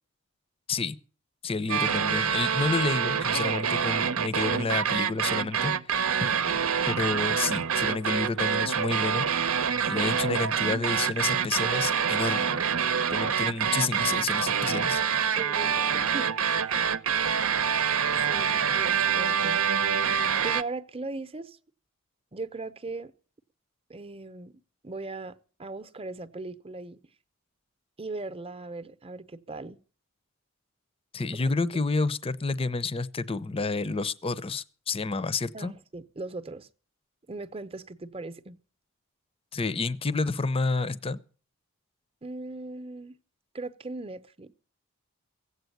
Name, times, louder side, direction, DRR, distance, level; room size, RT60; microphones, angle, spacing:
voice 1, 1.4-6.0 6.9-9.5 9.9-12.6 13.1-15.0 31.1-35.7 39.5-41.2, left 3 dB, 25° left, 0.6 m, -30 dB
sound 1, 1.7-20.6, right 7 dB, 70° right, 0.8 m, -26 dB
voice 2, 9.8-10.2 15.4-16.3 16.6-16.8 18.2-19.7 20.4-21.6 22.3-23.1 23.9-27.0 28.0-29.8 31.4-31.5 35.5-36.7 37.3-38.6 42.2-43.2 43.5-44.6, right 3 dB, 25° right, 0.8 m, -39 dB
16.5 x 8.1 x 9.3 m
head